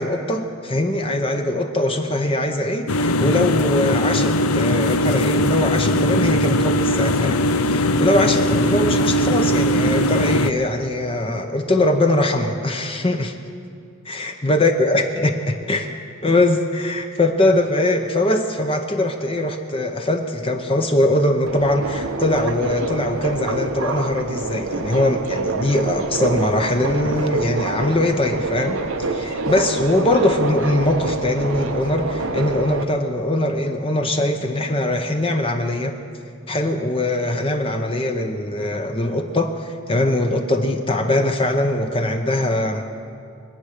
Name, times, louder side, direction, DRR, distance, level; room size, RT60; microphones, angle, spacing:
voice 1, 0.0-13.3 14.0-15.9 16.2-28.8 29.1-36.0 36.5-42.8, left 1 dB, 25° left, 4 dB, 0.8 m, -21 dB
sound 1, 2.9-10.5, left 1 dB, 90° left, 0.6 m, -19 dB
Subway metro underground, 21.5-32.8, right 3 dB, 75° right, 0.8 m, -26 dB
24.0 x 8.6 x 6.5 m, 2.4 s
head